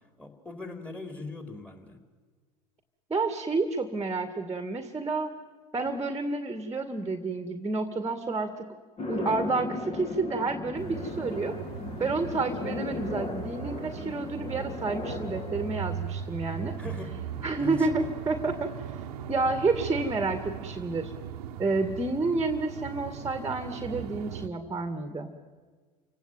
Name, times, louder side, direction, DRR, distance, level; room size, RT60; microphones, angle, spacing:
voice 1, 0.2-2.0 16.8-18.2, left 2 dB, 5° left, 8 dB, 4.3 m, -41 dB
voice 2, 3.1-5.3 5.7-8.7 9.1-11.6 12.0-16.8 17.4-18.7 19.3-21.1 21.6-25.3, right 3 dB, 15° right, 9 dB, 2.1 m, -30 dB
sound 1, 9.0-19.4, left 2 dB, 30° left, 3.9 m, -38 dB
sound 2, 10.7-24.5, right 9 dB, 75° right, 1.3 m, -39 dB
29.0 x 17.5 x 9.3 m, 1.5 s
hypercardioid pair, 80°, 20 cm